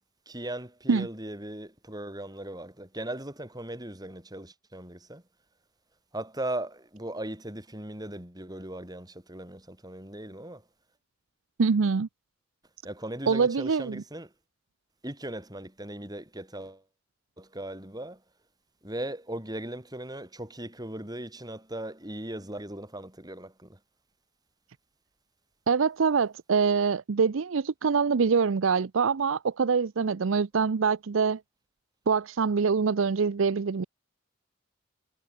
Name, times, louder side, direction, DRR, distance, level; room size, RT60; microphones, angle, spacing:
voice 1, 0.3-5.2 6.1-10.6 12.8-14.3 15.0-16.8 17.4-18.2 18.8-23.8, right 1 dB, 20° right, 7.4 m, -38 dB
voice 2, 11.6-12.1 13.3-14.0 25.7-31.4 32.1-33.8, right 5 dB, 75° right, 0.5 m, -24 dB
head